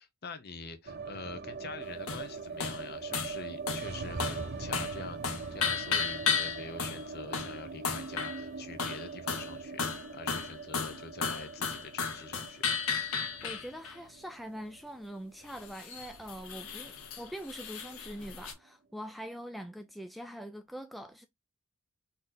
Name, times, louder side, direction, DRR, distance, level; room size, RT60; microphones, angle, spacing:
voice 1, 0.0-12.7, left 4 dB, 45° left, 0.9 m, -45 dB
sound 1, 0.8-17.0 17.2-17.3 17.6-18.3, right 4 dB, 50° right, 0.6 m, -42 dB
sound 2, 2.1-2.3 2.6-2.8 3.1-3.4 3.7-3.9 4.2-4.5 4.7-5.0 5.2-7.0 7.3-7.6 7.8-8.4 8.8-9.5 9.8-13.9 15.5-18.5, left 6 dB, 70° left, 1.1 m, -34 dB
voice 2, 13.4-21.3, equal, ahead, 0.3 m, -43 dB
4.0 x 3.1 x 3.8 m
head